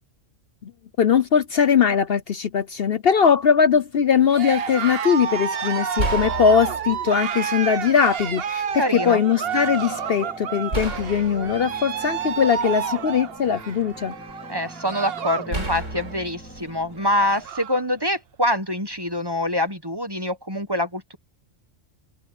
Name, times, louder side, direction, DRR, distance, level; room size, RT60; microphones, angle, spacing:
voice 1, 1.0-14.1, left 7 dB, 55° left, 0.9 m, -20 dB
Cheering, 4.3-15.5 15.8-16.3 16.7-16.8 17.0-17.8, right 7 dB, 55° right, 1.1 m, -30 dB
sound 1, 5.2-5.4 6.0-7.3 8.2-8.3 10.7-12.9 13.4-14.3 15.5-17.6, right 1 dB, 75° right, 5.9 m, -32 dB
voice 2, 8.8-9.2 14.5-21.2, left 1 dB, 20° right, 1.2 m, -25 dB
sound 2, 9.5-17.5, equal, 10° left, 2.4 m, -44 dB
open air
omnidirectional pair, 1.3 m